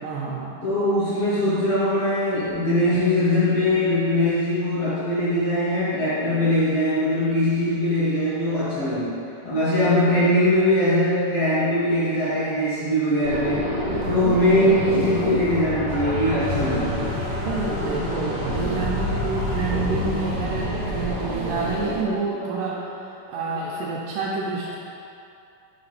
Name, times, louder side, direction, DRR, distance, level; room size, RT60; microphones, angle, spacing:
voice 1, 0.0-0.6 17.4-24.8, right 4 dB, 85° right, -5 dB, 2.2 m, -28 dB
voice 2, 0.6-9.1 9.4-13.7 14.1-17.0 21.1-21.3 22.0-22.6 23.5-23.6, left 1 dB, 60° left, -11 dB, 1.8 m, -21 dB
sound 1, 13.2-22.0, left 1 dB, 60° right, 1.2 m, -27 dB
5.8 x 3.8 x 5.8 m, 2.7 s
omnidirectional pair, 3.8 m